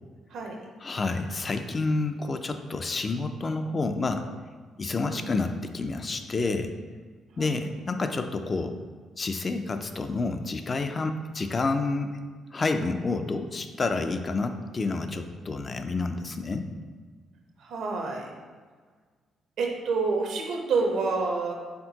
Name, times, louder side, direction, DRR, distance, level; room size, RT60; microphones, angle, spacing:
voice 1, 0.3-0.6 5.0-5.3 7.4-7.6 17.6-18.3 19.6-21.5, right 4 dB, 75° right, 2 dB, 0.7 m, -28 dB
voice 2, 0.8-4.2 4.8-6.7 7.4-8.8 9.2-12.1 12.5-16.6, left 3 dB, 35° left, 7 dB, 0.3 m, -29 dB
4.4 x 3.6 x 2.8 m, 1.5 s
cardioid pair, 90°, 0 cm